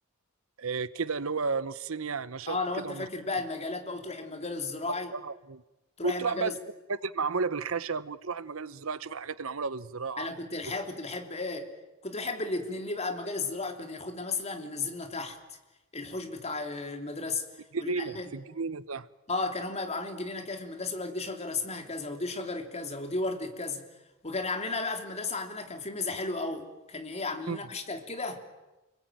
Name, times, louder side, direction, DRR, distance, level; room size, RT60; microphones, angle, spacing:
voice 1, 0.6-2.6 2.8-3.1 5.1-5.6 6.0-6.5 6.9-10.3 17.7-19.1 27.5-27.6, right 4 dB, 70° right, 0.9 m, -32 dB
voice 2, 2.5-5.1 6.0-6.6 10.2-11.7 12.0-15.4 15.9-17.4 17.8-18.3 19.3-23.9 24.2-28.4, left 3 dB, 30° left, 3.3 m, -34 dB
30.0 x 21.0 x 9.2 m
head